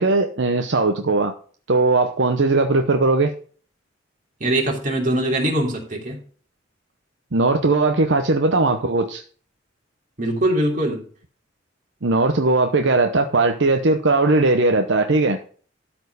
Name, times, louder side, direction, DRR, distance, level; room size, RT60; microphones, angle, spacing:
voice 1, 0.0-1.3 1.7-3.3 7.3-9.2 12.0-15.4, right 3 dB, 70° right, 0.8 m, -19 dB
voice 2, 4.4-6.2 10.2-11.0, right 1 dB, 40° right, 3.2 m, -22 dB
13.0 x 4.4 x 6.7 m
head